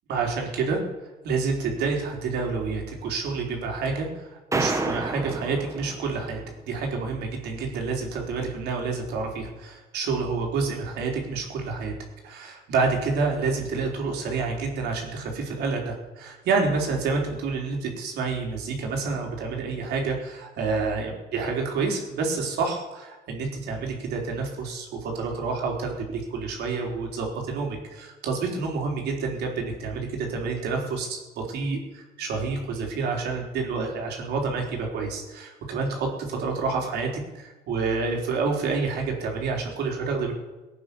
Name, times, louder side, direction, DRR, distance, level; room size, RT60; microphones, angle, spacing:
voice 1, 0.1-0.8 1.2-11.9 12.2-40.3, right 4 dB, 75° right, 1 dB, 4.2 m, -28 dB
sound 1, 4.5-6.5, right 2 dB, 20° right, 1.6 m, -29 dB
19.0 x 9.2 x 7.1 m, 1.2 s
cardioid pair, 110°, 17 cm